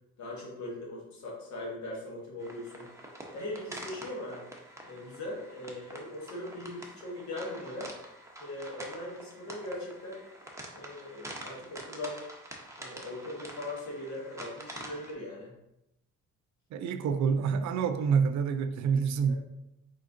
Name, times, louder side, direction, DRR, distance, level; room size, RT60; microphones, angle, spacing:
voice 1, 0.2-2.9 3.3-4.5 4.8-7.9 8.4-10.2 10.7-12.2 12.8-15.5 19.3-19.4, left 1 dB, 70° left, 1.5 m, -40 dB
sound 1, 2.4-15.1, right 1 dB, 10° right, 0.8 m, -46 dB
voice 2, 16.7-19.3, right 6 dB, 70° right, 0.4 m, -27 dB
4.4 x 3.5 x 2.5 m
cardioid pair, 90°, 30 cm